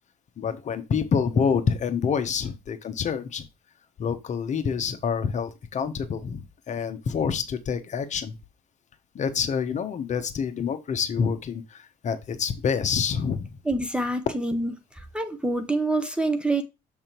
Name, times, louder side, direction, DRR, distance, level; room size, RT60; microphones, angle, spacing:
voice 1, 0.4-3.5 4.0-8.4 9.1-13.5, left 6 dB, 45° left, 1.0 m, -27 dB
voice 2, 13.7-14.7 15.1-16.6, right 2 dB, 5° right, 0.8 m, -26 dB
6.7 x 3.6 x 4.5 m
cardioid pair, 110°, 17 cm